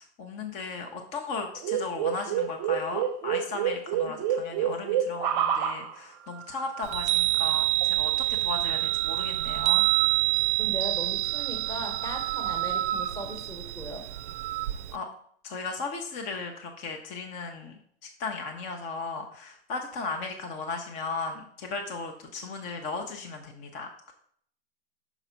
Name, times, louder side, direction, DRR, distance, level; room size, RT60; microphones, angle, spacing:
voice 1, 0.0-9.9 14.9-15.1 15.4-24.1, left 4 dB, 25° left, 3 dB, 0.6 m, -36 dB
sound 1, 1.5-5.9 6.4-7.0 7.8-7.9 8.8-10.3 11.5-13.3 14.3-14.7, right 9 dB, 35° right, 0.7 m, -30 dB
Chime, 6.8-15.0, right 20 dB, 80° right, 0.5 m, -27 dB
voice 2, 10.6-14.1, equal, 10° left, 3 dB, 1.0 m, -38 dB
6.0 x 3.9 x 5.6 m, 0.63 s
supercardioid pair, 150°, 34 cm